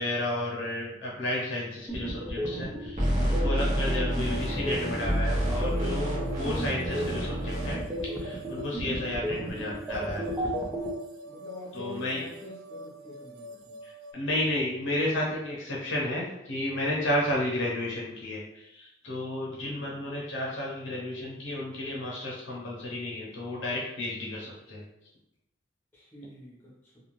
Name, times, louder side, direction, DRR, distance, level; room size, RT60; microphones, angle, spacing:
voice 1, 0.0-10.3 11.7-12.2 13.8-24.8, left 1 dB, 65° left, -4 dB, 0.7 m, -32 dB
sound 1, 1.9-10.9, right 1 dB, 10° right, 0.4 m, -34 dB
sound 2, 3.0-7.7, equal, 35° right, 0.7 m, -29 dB
sound 3, 4.0-14.1, equal, 80° right, 0.4 m, -46 dB
voice 2, 11.2-13.8 19.6-19.9 25.9-26.9, left 1 dB, 10° left, -7 dB, 0.9 m, -45 dB
2.4 x 2.3 x 3.0 m, 0.84 s
head